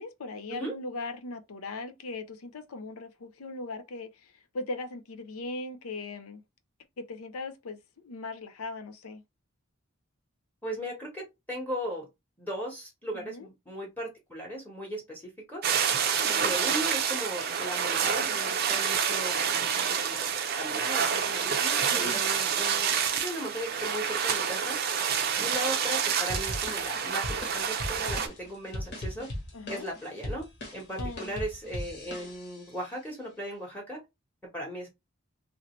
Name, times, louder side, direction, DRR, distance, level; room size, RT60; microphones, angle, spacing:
voice 1, 0.0-6.4 7.0-9.2 13.1-13.5 16.0-16.6 21.9-22.2 29.5-29.9 31.0-31.4, left 3 dB, 85° left, 0.5 m, -39 dB
voice 2, 10.6-12.1 12.4-15.7 16.4-19.3 19.8-24.8 25.4-29.3 29.7-30.4 30.7-34.0 34.5-34.9, equal, 10° left, 1.0 m, -37 dB
sound 1, 15.6-28.3, right 7 dB, 45° right, 0.4 m, -28 dB
sound 2, 26.3-32.7, left 1 dB, 50° left, 1.2 m, -38 dB
3.1 x 2.7 x 3.0 m
head